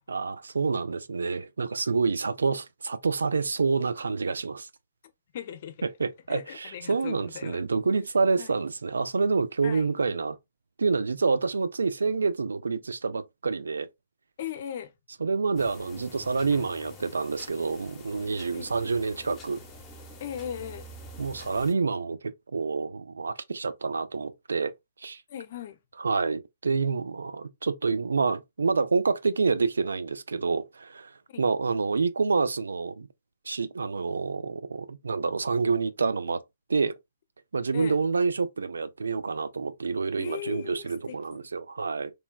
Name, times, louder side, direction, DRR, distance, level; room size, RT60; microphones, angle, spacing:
voice 1, 0.1-4.7 6.0-10.4 10.8-13.9 15.2-19.6 21.2-24.7 25.0-25.2 26.0-33.1 33.5-36.4 36.7-37.0 37.5-42.1, right 4 dB, 85° right, 0.3 m, -28 dB
voice 2, 5.3-5.8 6.3-7.7 8.4-8.5 9.6-9.9 14.4-14.9 18.5-18.7 20.2-20.8 25.3-25.8 31.3-31.4 37.7-38.0 40.2-41.5, left 10 dB, 55° left, 0.5 m, -38 dB
sound 1, 15.6-21.7, left 1 dB, 20° left, 0.8 m, -47 dB
3.2 x 2.2 x 2.2 m
hypercardioid pair, 135°, 0 cm